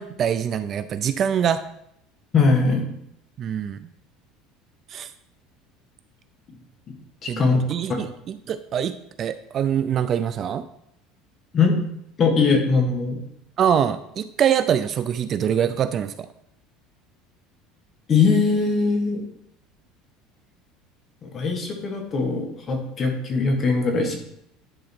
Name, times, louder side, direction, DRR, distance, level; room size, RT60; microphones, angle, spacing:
voice 1, 0.0-1.6 3.4-3.8 4.9-5.1 7.3-10.7 13.6-16.3, right 8 dB, 35° right, 12 dB, 0.4 m, -24 dB
voice 2, 2.3-2.9 7.2-7.6 11.5-11.8 12.2-13.2 18.1-19.2 21.2-24.2, left 4 dB, 30° left, 3 dB, 1.6 m, -21 dB
10.5 x 3.9 x 4.4 m, 0.75 s
cardioid pair, 135°, 0 cm